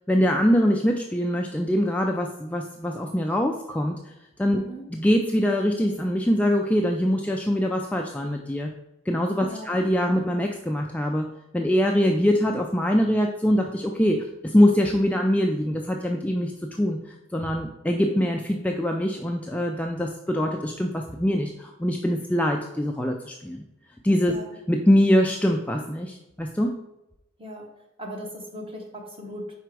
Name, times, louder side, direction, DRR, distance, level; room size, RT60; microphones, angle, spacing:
voice 1, 0.1-4.0 4.4-4.6 4.9-8.7 9.1-11.2 11.5-17.0 17.3-23.6 24.0-24.3 24.7-26.8, equal, 5° left, 1 dB, 0.3 m, -23 dB
voice 2, 9.4-9.8 24.3-24.5 27.4-27.7 28.0-29.6, equal, 25° right, 1 dB, 1.1 m, -38 dB
5.0 x 4.6 x 4.6 m, 0.91 s
head